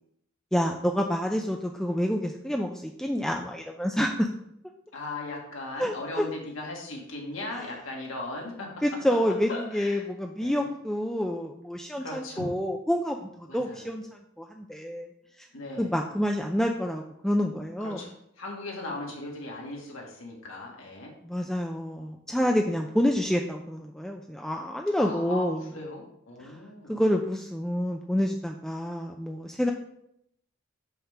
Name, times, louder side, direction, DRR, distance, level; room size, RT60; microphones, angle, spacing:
voice 1, 0.5-4.3 5.8-6.2 7.5-7.6 8.8-14.0 14.4-15.1 15.8-18.0 21.2-25.7 26.4-26.6 26.9-29.7, equal, 5° left, 2 dB, 0.3 m, -28 dB
voice 2, 4.9-8.7 9.5-10.0 10.4-10.7 12.0-12.5 13.5-13.9 15.5-15.9 17.8-21.1 25.0-27.0, left 2 dB, 85° left, -1 dB, 1.8 m, -38 dB
5.7 x 3.6 x 5.4 m, 0.75 s
head